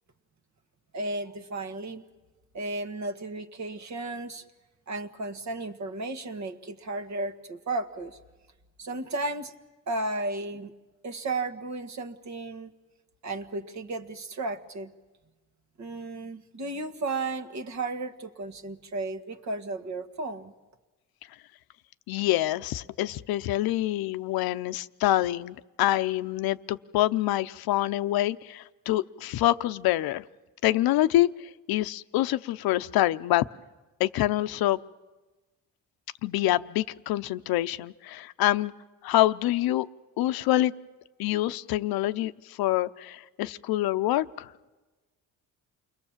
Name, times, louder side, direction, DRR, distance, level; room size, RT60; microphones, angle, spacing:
voice 1, 0.9-2.0 2.5-4.4 4.9-8.2 8.8-9.5 9.9-10.7 11.0-12.7 13.2-14.9 15.8-20.5, right 2 dB, 50° right, 8 dB, 1.7 m, -34 dB
voice 2, 22.1-30.2 30.6-33.4 34.0-34.8 36.2-38.7 39.0-39.9 40.2-40.7 41.2-44.5, left 15 dB, 80° left, 13 dB, 0.8 m, -26 dB
29.0 x 21.5 x 7.3 m, 1.2 s
cardioid pair, 85°, 36 cm